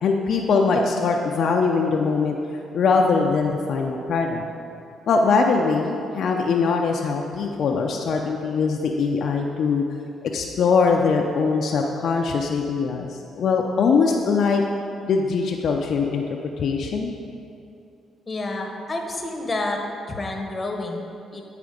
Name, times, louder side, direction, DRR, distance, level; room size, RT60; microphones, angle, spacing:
voice 1, 0.0-2.4 2.7-4.4 5.1-9.8 10.3-14.6 15.1-16.2 16.6-17.1, left 4 dB, 65° left, 1 dB, 0.5 m, -22 dB
voice 2, 18.3-19.8 20.1-21.4, left 2 dB, 25° left, 2 dB, 1.1 m, -29 dB
9.4 x 4.9 x 5.0 m, 2.6 s
cardioid pair, 90°, 0 cm